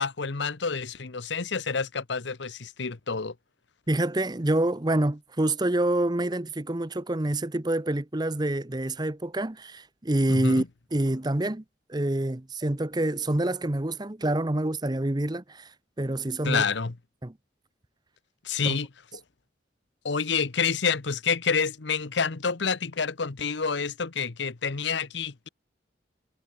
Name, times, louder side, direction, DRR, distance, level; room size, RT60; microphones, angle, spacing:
voice 1, 0.0-3.3 10.3-10.6 16.4-16.9 18.4-19.2 20.0-25.5, left 5 dB, 70° left, 1.0 m, -28 dB
voice 2, 3.9-10.6 10.9-11.6 11.9-15.7 16.0-16.6 17.2-17.3 18.6-18.8, right 1 dB, 20° right, 0.8 m, -27 dB
head